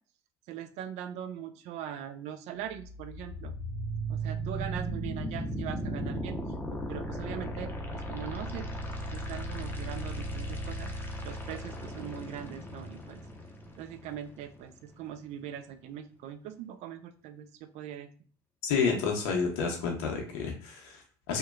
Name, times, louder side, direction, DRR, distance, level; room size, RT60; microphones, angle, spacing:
voice 1, 0.5-3.5 4.1-6.4 6.9-8.7 9.1-13.2 13.8-18.1, right 10 dB, 60° right, 10 dB, 0.4 m, -41 dB
sound 1, 2.6-14.6, right 1 dB, 15° left, 0.6 m, -36 dB
voice 2, 18.6-21.4, left 5 dB, 75° left, 1 dB, 0.6 m, -30 dB
2.9 x 2.1 x 2.2 m, 0.42 s
hypercardioid pair, 70°, 13 cm